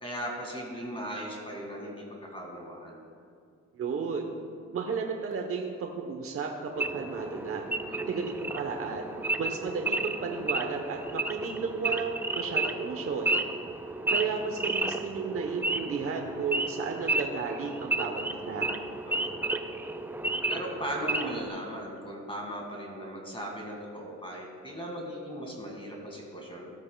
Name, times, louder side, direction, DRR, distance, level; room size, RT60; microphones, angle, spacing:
voice 1, 0.0-3.0 7.8-8.3 19.1-19.6 20.5-26.7, equal, 20° left, -1 dB, 1.9 m, -38 dB
voice 2, 3.7-4.3 4.7-7.6 8.1-9.1 9.4-13.3 14.1-18.7, right 5 dB, 50° right, 2 dB, 0.9 m, -33 dB
Wild animals / Idling, 6.8-21.5, right 2 dB, 5° right, 0.4 m, -32 dB
15.0 x 8.3 x 2.3 m, 2.2 s
cardioid pair, 90°, 30 cm